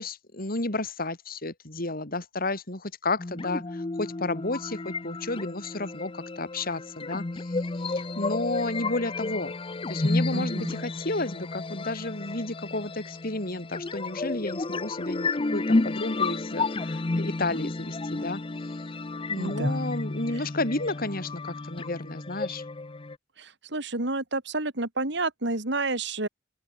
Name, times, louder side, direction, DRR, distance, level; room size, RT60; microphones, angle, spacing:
voice 1, 0.0-7.9 8.2-9.6 9.9-18.8 19.3-22.6, left 2 dB, 50° left, 4.2 m, -32 dB
sound 1, 3.2-23.2, left 3 dB, 30° left, 0.6 m, -31 dB
voice 2, 10.3-10.8 19.4-19.9 20.3-20.5 23.4-26.3, right 2 dB, 65° right, 3.4 m, -30 dB
open air
head